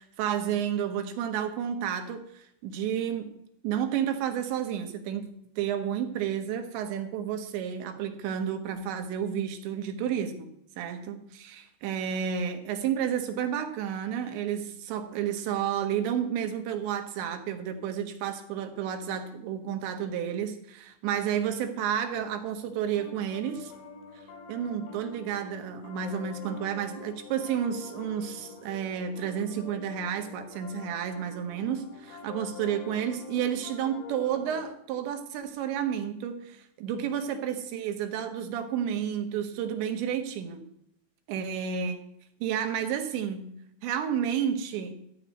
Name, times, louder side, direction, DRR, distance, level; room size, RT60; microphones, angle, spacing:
voice 1, 0.0-3.3 3.6-5.3 5.6-10.5 10.8-23.7 24.5-40.6 41.3-42.0 42.4-43.5 43.8-44.9, right 8 dB, 75° right, 6 dB, 3.5 m, -31 dB
Piano, 22.1-34.6, left 5 dB, 60° left, 4.5 m, -46 dB
14.0 x 5.7 x 9.4 m, 0.74 s
omnidirectional pair, 5.3 m